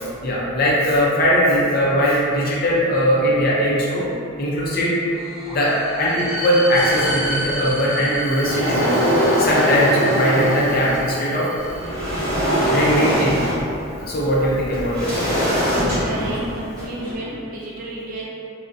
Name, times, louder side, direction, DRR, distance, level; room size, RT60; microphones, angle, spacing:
voice 1, 0.0-4.1 4.4-4.9 5.5-9.0 9.4-11.5 12.7-13.3 13.9-15.2, equal, 45° left, -5 dB, 0.5 m, -20 dB
sound 1, 5.1-11.9, equal, 85° left, 0.7 m, -31 dB
sound 2, 6.7-7.7 8.1-11.1 11.6-17.1, equal, 10° left, 0.7 m, -22 dB
voice 2, 16.0-18.3, right 1 dB, 40° right, -5 dB, 0.4 m, -32 dB
2.5 x 2.1 x 2.4 m, 2.5 s
head